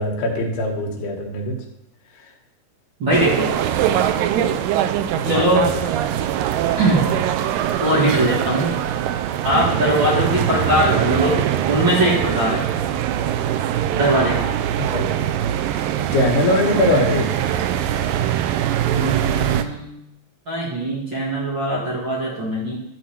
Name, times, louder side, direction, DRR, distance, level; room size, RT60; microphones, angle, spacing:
voice 1, 0.0-1.5 2.2-2.3 5.2-5.9 14.8-15.1 16.1-17.4, left 1 dB, 80° left, 1 dB, 3.6 m, -22 dB
voice 2, 3.0-3.5 4.3-4.5 5.2-5.7 6.8-7.2 7.8-8.8 9.4-11.4 11.7-12.7 13.9-14.5 18.9-20.0 20.5-22.8, right 1 dB, 40° right, -6 dB, 2.0 m, -20 dB
sound 1, 3.1-19.6, right 10 dB, 85° right, 2.0 m, -22 dB
12.5 x 4.3 x 7.3 m, 0.83 s
omnidirectional pair, 4.6 m